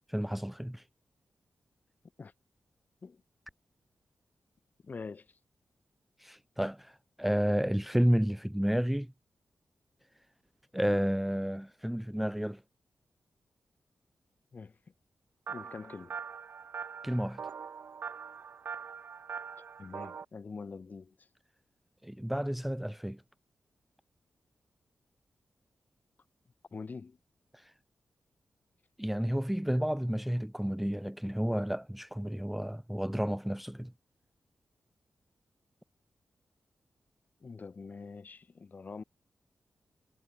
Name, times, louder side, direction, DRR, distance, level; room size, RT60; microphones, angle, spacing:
voice 1, 0.1-0.8 6.2-9.1 10.7-12.6 17.0-17.4 22.0-23.2 27.5-27.7 29.0-33.9, equal, 5° right, 0.6 m, -31 dB
voice 2, 4.8-5.4 14.5-14.8 15.5-16.2 19.6-21.3 26.7-27.2 37.4-39.0, left 4 dB, 45° left, 3.4 m, -45 dB
sound 1, 15.5-20.2, right 6 dB, 65° right, 1.4 m, -42 dB
cardioid pair, 85°, 4 cm